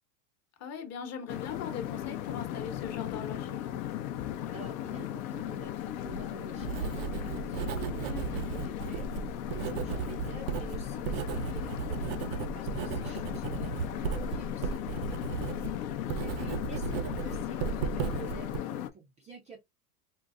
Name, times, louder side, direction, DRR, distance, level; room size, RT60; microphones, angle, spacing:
voice 1, 0.6-3.8 9.6-10.1 15.5-16.0, left 7 dB, 35° left, 0.9 m, -41 dB
sound 1, 1.3-18.9, left 12 dB, 60° left, 0.6 m, -37 dB
voice 2, 4.5-5.8 6.0-15.1 15.5-15.8 16.2-19.6, right 4 dB, 15° right, 0.4 m, -49 dB
Writing, 5.8-18.6, right 6 dB, 60° right, 0.6 m, -35 dB
3.9 x 2.0 x 2.4 m
supercardioid pair, 115°, 46 cm